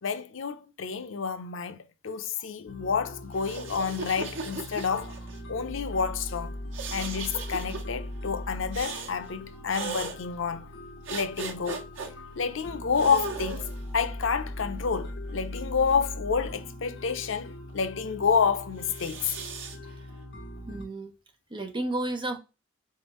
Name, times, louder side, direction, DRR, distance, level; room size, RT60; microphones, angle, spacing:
voice 1, 0.0-1.8 2.0-5.1 5.5-6.5 6.9-10.7 11.1-11.9 12.4-19.3, left 6 dB, 90° left, 0.6 m, -29 dB
sound 1, 2.7-20.8, left 1 dB, 65° left, 1.2 m, -40 dB
sound 2, 3.3-5.4 6.7-7.8 8.7-9.1 9.7-10.2 11.1-12.1 12.9-13.8 14.6-15.8 18.8-19.8, right 4 dB, 80° right, 1.0 m, -37 dB
voice 2, 20.7-21.1 21.5-22.4, right 2 dB, 25° right, 0.9 m, -31 dB
4.2 x 3.7 x 2.9 m
head